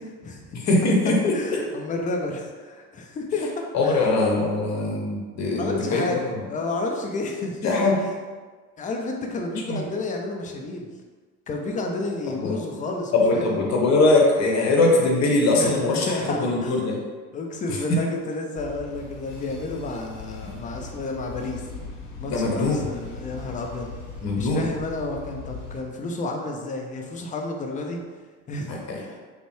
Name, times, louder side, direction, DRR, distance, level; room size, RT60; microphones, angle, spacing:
voice 1, 0.0-0.5 1.3-4.1 5.6-7.9 8.8-10.9 11.5-13.6 15.6-16.7 17.3-21.6 22.2-23.9 24.3-28.0 28.5-29.2, left 2 dB, 20° left, 2 dB, 0.5 m, -31 dB
voice 2, 0.5-1.3 3.7-6.4 7.6-8.0 9.7-9.8 12.4-12.6 13.1-17.0 17.7-17.8 20.4-20.6 22.3-22.9 24.2-24.7 28.7-29.0, left 2 dB, 35° left, -1 dB, 1.0 m, -22 dB
sound 1, 18.6-25.8, left 4 dB, 65° left, 0.8 m, -39 dB
5.1 x 2.1 x 3.1 m, 1.5 s
figure-of-eight pair, 60°, 44 cm